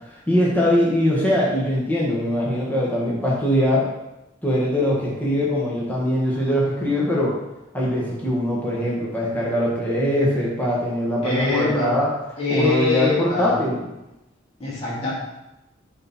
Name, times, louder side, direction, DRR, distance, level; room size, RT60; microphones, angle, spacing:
voice 1, 0.1-3.8 4.4-7.3 7.7-12.1 12.5-13.9, left 1 dB, 10° left, -5 dB, 1.6 m, -22 dB
voice 2, 11.2-12.0 12.4-13.5 14.6-15.1, left 3 dB, 30° left, -8 dB, 2.5 m, -23 dB
9.5 x 4.3 x 4.5 m, 0.94 s
head